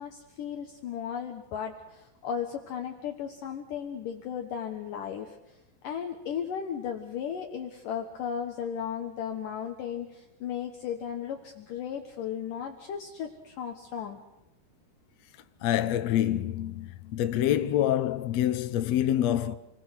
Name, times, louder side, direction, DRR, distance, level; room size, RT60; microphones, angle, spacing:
voice 1, 0.0-14.2, left 8 dB, 65° left, 2.6 m, -35 dB
voice 2, 15.6-19.5, left 11 dB, 85° left, 1.5 m, -26 dB
28.5 x 21.0 x 6.4 m
omnidirectional pair, 4.7 m